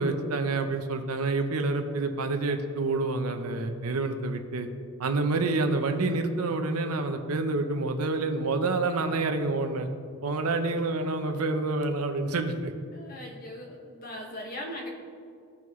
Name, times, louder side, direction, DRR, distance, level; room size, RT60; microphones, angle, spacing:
voice 1, 0.0-4.7 5.0-9.9 10.2-12.7, right 3 dB, 85° right, 6 dB, 0.8 m, -28 dB
voice 2, 12.9-14.9, left 1 dB, 40° left, -1 dB, 1.6 m, -39 dB
16.5 x 5.7 x 3.2 m, 2.3 s
head